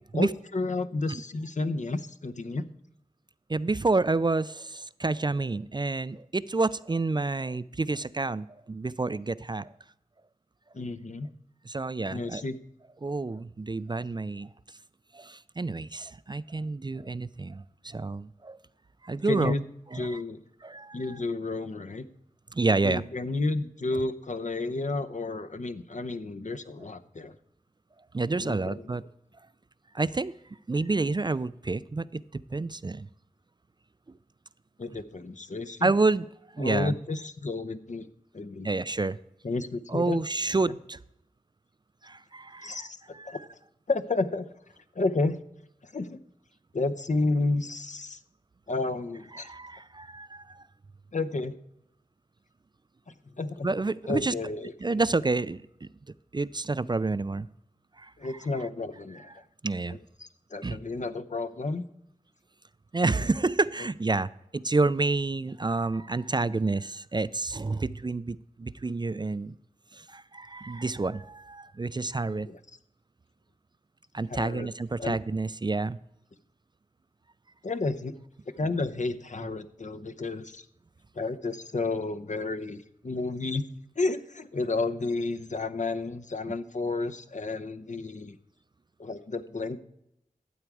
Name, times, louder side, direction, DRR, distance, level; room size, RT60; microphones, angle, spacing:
voice 1, 0.1-2.6 10.7-11.3 12.1-12.6 19.2-19.6 19.9-20.4 20.9-22.0 22.8-27.3 28.3-29.0 34.8-35.9 36.6-38.1 38.3-38.7 39.4-40.2 42.6-43.0 43.3-43.4 43.9-44.5 44.9-45.4 45.9-46.2 46.7-48.2 48.7-49.5 51.1-51.5 53.4-53.7 54.1-54.9 58.2-59.3 60.2-61.8 72.5-72.6 74.3-74.7 75.0-75.1 77.6-78.1 78.6-80.6 81.2-83.6 84.0-88.4 89.0-89.8, left 3 dB, 55° left, 9 dB, 0.8 m, -31 dB
voice 2, 3.5-9.7 11.7-12.4 13.0-14.5 15.1-18.6 19.0-19.5 19.9-20.2 20.6-21.2 22.5-23.0 28.1-29.0 29.9-30.3 30.7-32.2 32.5-33.1 35.8-36.3 36.5-37.0 38.6-39.2 39.9-41.0 42.0-42.9 43.1-43.4 49.4-50.6 53.6-54.3 54.8-55.9 56.3-57.5 58.0-58.1 59.6-60.0 60.6-60.8 62.9-69.5 69.9-72.5 74.1-76.0, right 3 dB, 30° right, 16 dB, 0.4 m, -29 dB
12.5 x 8.1 x 4.8 m, 0.80 s
wide cardioid pair, 55°, 15 cm